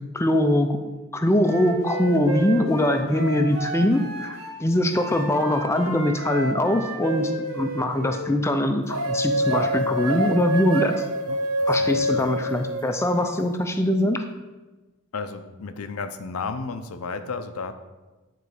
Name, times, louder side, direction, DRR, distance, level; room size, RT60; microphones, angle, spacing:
voice 1, 0.1-0.8 1.1-11.1 11.7-14.2, left 1 dB, 15° left, 5 dB, 0.5 m, -22 dB
Wind instrument woodwind instrument, 1.4-4.6 4.9-8.3, right 2 dB, 65° right, 1.7 m, -33 dB
sound 1, 8.9-13.4, right 1 dB, 85° right, 0.7 m, -25 dB
voice 2, 11.8-12.2 15.1-17.7, left 4 dB, 85° left, 8 dB, 0.6 m, -33 dB
8.9 x 4.0 x 4.9 m, 1.2 s
head